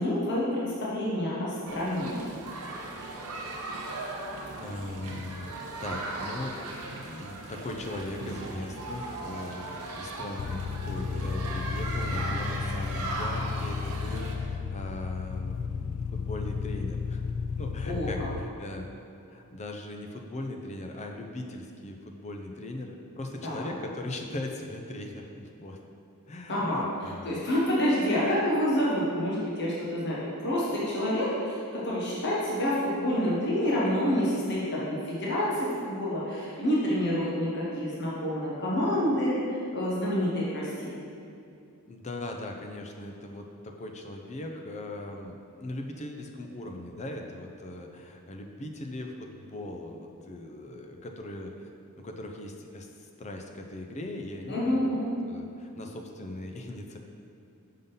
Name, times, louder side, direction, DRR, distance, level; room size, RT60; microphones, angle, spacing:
voice 1, 0.0-2.2 17.8-18.1 23.4-23.7 26.5-41.0 54.5-55.1, equal, 55° left, -6 dB, 1.1 m, -28 dB
sound 1, 1.7-14.3, right 2 dB, 80° right, 0.8 m, -38 dB
voice 2, 4.6-6.6 6.9-17.2 17.6-18.9 19.3-25.8 26.3-27.4 41.9-51.7 52.0-57.0, left 1 dB, 30° left, 3 dB, 0.5 m, -39 dB
sound 2, 10.4-18.4, left 5 dB, 85° left, 0.3 m, -33 dB
5.4 x 3.8 x 5.5 m, 2.5 s
head